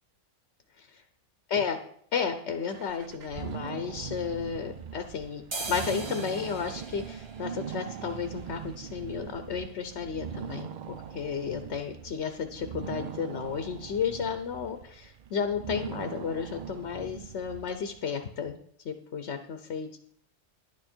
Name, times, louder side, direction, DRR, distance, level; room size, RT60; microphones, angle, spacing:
voice 1, 2.1-18.6 18.8-20.0, left 6 dB, 60° left, 8 dB, 1.0 m, -33 dB
sound 1, 2.7-18.1, right 8 dB, 80° right, 0.4 m, -41 dB
sound 2, 4.7-5.0 5.3-13.0 13.4-13.5 13.7-14.3 14.6-14.8 15.1-15.3 15.6-16.3 16.6-16.8 17.3-17.4 17.7-17.8, right 3 dB, 30° right, 0.6 m, -44 dB
11.0 x 9.0 x 4.4 m, 0.65 s
omnidirectional pair, 1.4 m